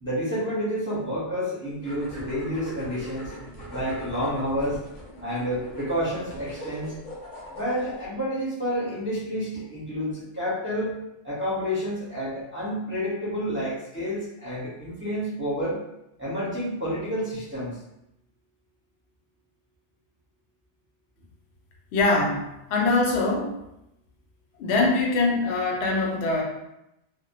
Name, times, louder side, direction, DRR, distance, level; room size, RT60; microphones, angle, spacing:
voice 1, 0.0-3.3 3.7-4.8 5.2-6.9 7.5-11.0 11.2-15.8 16.2-17.8, equal, 10° right, -10 dB, 0.7 m, -29 dB
sound 1, 1.8-8.1, equal, 40° left, 0.6 m, -40 dB
voice 2, 21.9-22.4 22.7-23.6 24.6-26.4, left 3 dB, 70° left, -1 dB, 0.8 m, -23 dB
2.1 x 2.1 x 2.8 m, 0.85 s
omnidirectional pair, 1.2 m